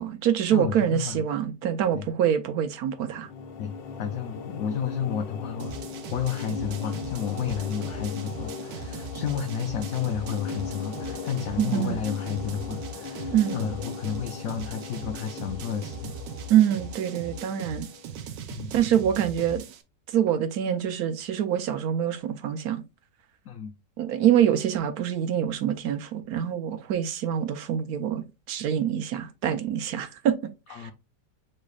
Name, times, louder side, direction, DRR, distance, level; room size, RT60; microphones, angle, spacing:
voice 1, 0.0-3.3 11.6-12.0 13.3-13.6 16.5-17.9 18.7-19.7 20.1-22.8 24.0-30.9, right 10 dB, 70° right, 1.0 m, -25 dB
voice 2, 0.5-1.2 1.9-2.1 3.6-5.8 6.1-16.2 18.5-18.7 23.5-23.7 30.7-30.9, left 8 dB, 65° left, 0.8 m, -31 dB
sound 1, 2.9-18.2, left 5 dB, 85° left, 1.4 m, -38 dB
sound 2, 5.6-19.8, right 5 dB, 90° right, 1.3 m, -40 dB
6.4 x 3.3 x 2.3 m
omnidirectional pair, 1.9 m